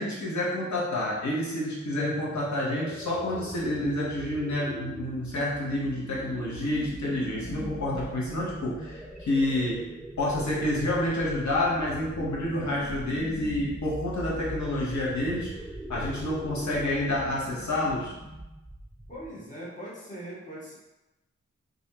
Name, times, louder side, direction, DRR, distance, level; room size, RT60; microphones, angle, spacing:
voice 1, 0.0-9.9 10.2-15.6 15.9-18.1, left 1 dB, 70° left, -5 dB, 1.0 m, -29 dB
sound 1, 2.0-19.5, equal, ahead, 0.4 m, -40 dB
voice 2, 19.1-20.8, right 1 dB, 25° left, -7 dB, 1.4 m, -40 dB
3.2 x 2.5 x 2.8 m, 1.0 s
cardioid pair, 55°, 30 cm